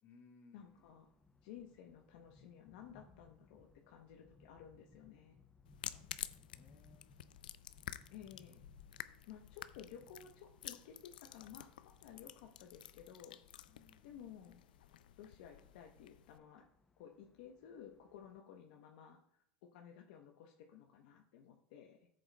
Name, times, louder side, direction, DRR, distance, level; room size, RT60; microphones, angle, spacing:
voice 1, 0.0-0.9 5.8-7.1 13.7-14.2, left 4 dB, 45° left, 1 dB, 2.1 m, -65 dB
voice 2, 0.5-1.1 1.4-5.4 8.1-8.6 9.3-13.4 14.0-14.6 15.2-16.7 17.0-19.4 19.7-22.1, left 8 dB, 70° left, 1 dB, 0.9 m, -55 dB
sound 1, 0.6-18.4, left 4 dB, 15° left, 0.5 m, -67 dB
sound 2, 5.6-16.4, left 11 dB, 90° left, 0.4 m, -51 dB
14.0 x 7.6 x 2.2 m, 0.75 s
supercardioid pair, 110°, 5 cm